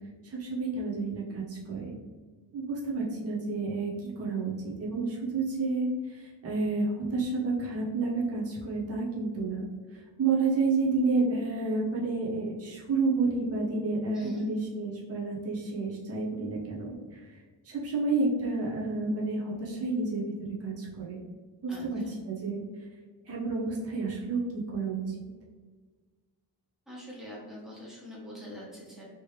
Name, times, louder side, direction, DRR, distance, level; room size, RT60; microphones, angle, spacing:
voice 1, 0.2-1.9 2.5-9.6 10.2-17.2 17.6-20.2 20.6-21.2 21.6-22.0 22.3-22.6 23.3-25.0, right 3 dB, 35° right, -5 dB, 0.8 m, -30 dB
voice 2, 14.1-14.5 21.7-22.1 26.9-29.0, equal, ahead, -7 dB, 1.1 m, -44 dB
3.0 x 3.0 x 3.2 m, 1.4 s
wide cardioid pair, 145°, 40 cm